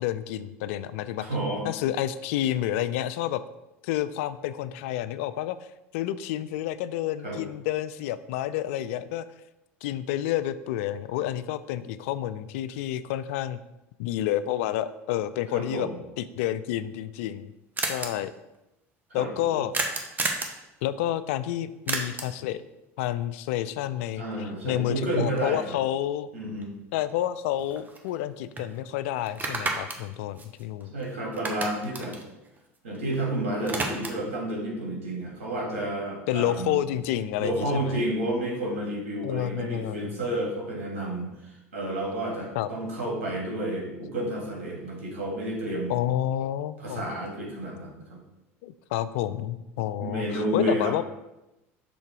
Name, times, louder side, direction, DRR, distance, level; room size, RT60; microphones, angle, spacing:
voice 1, 0.0-1.3 1.6-3.4 3.8-5.6 5.9-9.3 9.8-13.6 14.0-15.9 16.2-17.5 17.9-18.3 19.1-19.7 20.8-22.6 23.0-26.3 26.9-30.9 36.3-38.0 39.2-40.2 42.5-42.7 45.9-47.1 48.6-51.0, left 12 dB, 75° left, 14 dB, 0.4 m, -29 dB
voice 2, 1.2-1.7 7.2-7.4 15.5-16.0 19.1-19.6 24.2-25.7 26.3-26.7 30.9-32.2 32.8-36.8 37.4-46.0 46.8-48.2 50.0-50.9, right 1 dB, 90° right, -3 dB, 2.3 m, -30 dB
sound 1, 16.8-16.9 17.1-17.2 17.4-17.5 17.8-18.1 19.7-20.6 21.9-22.4 26.6-26.7 27.1-28.3 28.6-28.7 29.3-31.0 31.3-33.2 33.4-34.3, right 3 dB, 25° right, 1.0 m, -31 dB
6.2 x 3.7 x 4.6 m, 0.94 s
hypercardioid pair, 85°, 7 cm